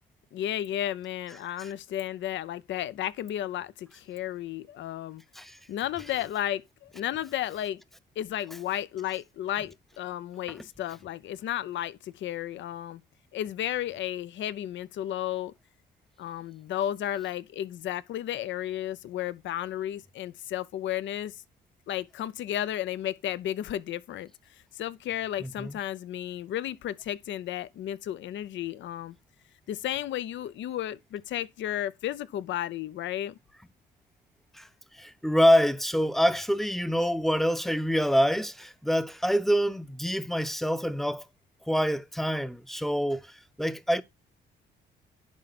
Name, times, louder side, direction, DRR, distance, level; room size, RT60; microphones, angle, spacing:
voice 1, 0.3-5.2 5.7-7.8 8.2-13.0 13.3-15.5 16.2-21.4 21.9-24.3 24.7-29.2 29.7-33.3, left 12 dB, 70° left, 0.6 m, -33 dB
voice 2, 25.4-25.8 34.5-34.7 34.9-41.2 41.7-43.3 43.6-44.0, equal, ahead, 0.7 m, -26 dB
10.5 x 4.4 x 4.0 m
cardioid pair, 90°, 20 cm